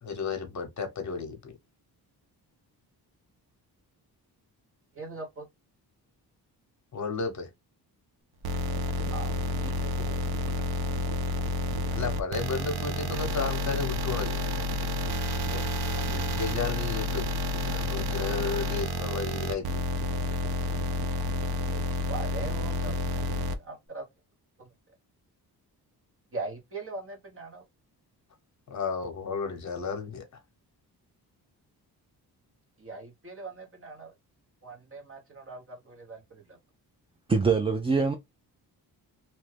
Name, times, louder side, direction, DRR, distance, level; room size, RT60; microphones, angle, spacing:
voice 1, 0.0-1.5 6.9-7.5 11.9-14.4 15.5-17.3 17.5-19.8 28.7-30.2, left 5 dB, 45° left, 0.9 m, -33 dB
voice 2, 4.9-5.4 9.1-9.3 9.6-10.3 21.7-21.8 22.1-22.9 23.6-24.0 24.6-24.7 26.3-27.6 32.8-34.1 34.6-36.6, right 3 dB, 35° right, 1.1 m, -40 dB
sound 1, 8.4-23.5, left 1 dB, 70° right, 0.7 m, -30 dB
voice 3, 37.3-38.1, right 4 dB, 15° right, 0.3 m, -23 dB
2.9 x 2.3 x 3.3 m
cardioid pair, 120°, 39 cm